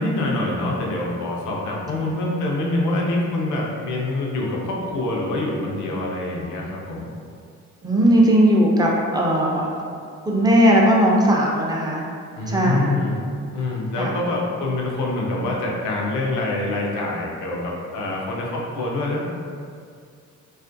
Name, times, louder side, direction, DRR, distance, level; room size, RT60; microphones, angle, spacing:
voice 1, 0.0-7.1 12.3-19.3, left 2 dB, 80° left, -2 dB, 0.6 m, -25 dB
voice 2, 7.8-9.7 10.2-12.0 12.5-13.0 14.0-14.1, equal, 15° right, -2 dB, 0.4 m, -18 dB
2.4 x 2.1 x 2.5 m, 2.3 s
cardioid pair, 90°, 30 cm